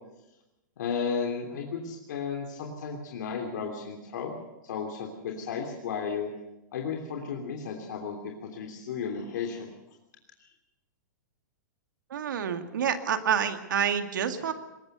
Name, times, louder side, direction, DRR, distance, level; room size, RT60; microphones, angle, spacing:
voice 1, 0.8-4.3 4.6-6.3 6.7-9.7, left 6 dB, 70° left, 1 dB, 3.2 m, -34 dB
voice 2, 12.1-14.5, right 8 dB, 80° right, 7 dB, 2.1 m, -28 dB
21.5 x 18.5 x 6.9 m, 0.95 s
hypercardioid pair, 145°, 10 cm